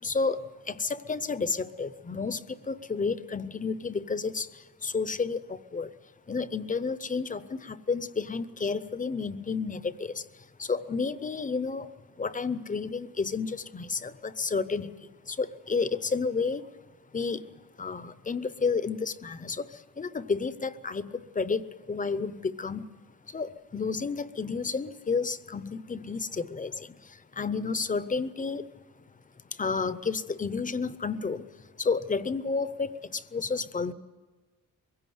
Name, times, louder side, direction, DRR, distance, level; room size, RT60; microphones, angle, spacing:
voice 1, 0.0-2.4 2.7-4.5 4.8-5.9 6.3-10.2 10.6-11.9 12.2-14.9 15.3-16.7 17.1-17.4 17.8-19.7 20.0-21.6 21.9-22.8 23.3-26.9 27.4-28.7 29.6-31.4 31.8-33.9, left 4 dB, 25° left, 15 dB, 0.7 m, -31 dB
23.0 x 16.5 x 9.4 m, 1.3 s
wide cardioid pair, 145°, 32 cm